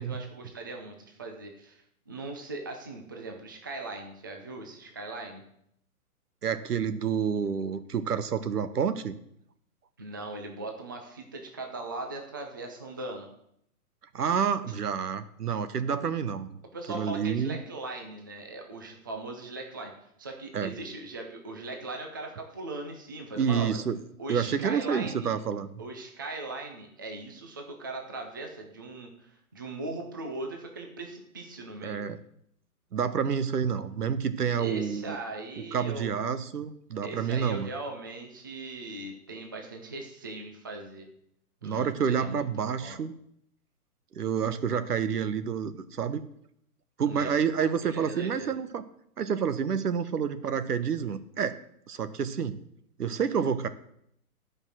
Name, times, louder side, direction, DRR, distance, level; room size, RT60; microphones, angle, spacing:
voice 1, 0.0-5.4 10.0-13.3 16.7-19.9 20.2-23.8 24.2-25.4 25.8-32.0 34.6-36.1 37.0-41.1 41.6-42.4 42.8-43.0 47.0-47.4 47.8-48.5, right 2 dB, 15° right, 3 dB, 0.4 m, -39 dB
voice 2, 6.4-9.2 14.1-16.6 16.9-17.6 20.5-20.7 23.4-24.0 24.3-25.7 31.8-32.2 32.9-35.2 35.7-37.7 41.6-43.1 44.1-46.2 47.0-48.8 49.2-51.6 51.9-52.6 53.0-53.7, right 7 dB, 90° right, 12 dB, 1.1 m, -29 dB
12.5 x 5.3 x 6.2 m, 0.72 s
hypercardioid pair, 150°, 45 cm